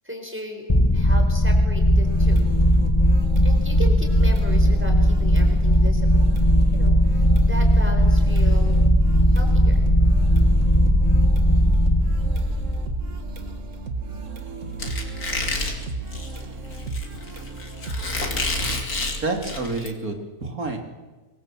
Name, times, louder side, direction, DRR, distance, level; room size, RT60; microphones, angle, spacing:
voice 1, 0.0-2.6 3.4-6.4 6.7-8.9 9.3-9.8, equal, 10° right, 4 dB, 4.4 m, -36 dB
sound 1, 0.7-14.0, equal, 20° left, 1.3 m, -18 dB
sound 2, 1.9-18.8, right 2 dB, 55° right, 2.1 m, -33 dB
Squeak, 14.8-19.9, left 2 dB, 85° left, 3.4 m, -29 dB
voice 2, 19.2-20.8, right 3 dB, 75° right, 4 dB, 3.2 m, -28 dB
24.0 x 22.5 x 7.5 m, 1.2 s
omnidirectional pair, 1.5 m